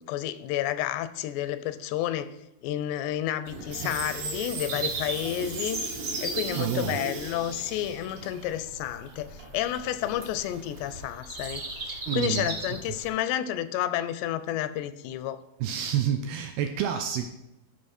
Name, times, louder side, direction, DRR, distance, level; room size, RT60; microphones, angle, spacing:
voice 1, 0.0-2.3 2.6-15.4, left 12 dB, 85° left, 13 dB, 2.7 m, -31 dB
Bird vocalization bird call bird song, 3.5-13.1, right 3 dB, 50° right, 1.4 m, -37 dB
Water tap faucet / Sink (filling or washing), 3.5-11.0, right 3 dB, 65° right, 2.8 m, -39 dB
voice 2, 6.6-7.0 12.1-12.5 15.6-17.3, right 9 dB, 80° right, 6 dB, 2.3 m, -28 dB
12.5 x 5.1 x 4.3 m, 0.91 s
omnidirectional pair, 4.9 m